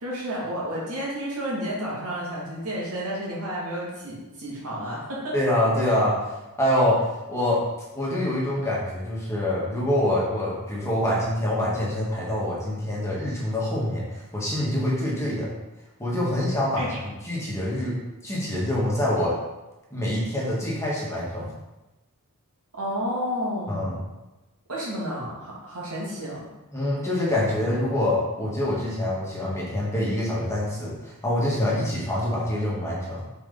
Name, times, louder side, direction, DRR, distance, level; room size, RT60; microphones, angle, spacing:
voice 1, 0.0-5.3 16.8-16.9 22.8-23.9 24.7-26.5, equal, 75° right, -5 dB, 2.1 m, -31 dB
voice 2, 5.3-7.0 7.3-7.7 7.9-15.5 16.0-17.0 17.2-18.0 18.2-19.4 19.9-21.5 23.7-24.0 26.7-33.2, left 1 dB, 15° left, -6 dB, 1.5 m, -25 dB
5.8 x 4.2 x 3.8 m, 1.0 s
head